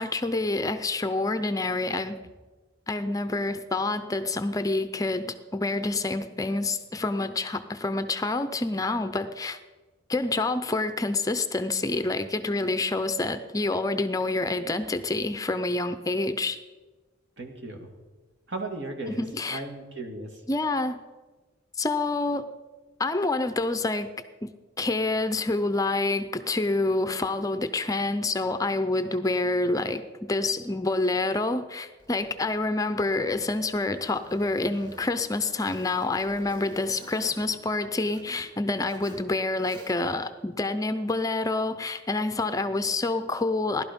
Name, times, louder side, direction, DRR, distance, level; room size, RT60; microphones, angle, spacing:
voice 1, 0.0-2.2 2.9-9.6 10.1-16.6 19.1-19.6 20.5-21.0 21.8-22.5 23.0-24.1 24.4-24.5 24.8-30.0 30.3-43.8, left 2 dB, 20° left, 9 dB, 0.6 m, -27 dB
voice 2, 17.4-17.9 18.5-20.4, right 2 dB, 65° right, 3 dB, 2.2 m, -36 dB
Zipper (clothing), 32.0-38.5 38.8-39.3 39.6-40.2, equal, 25° right, 2.1 m, -51 dB
17.5 x 12.0 x 5.3 m, 1.3 s
head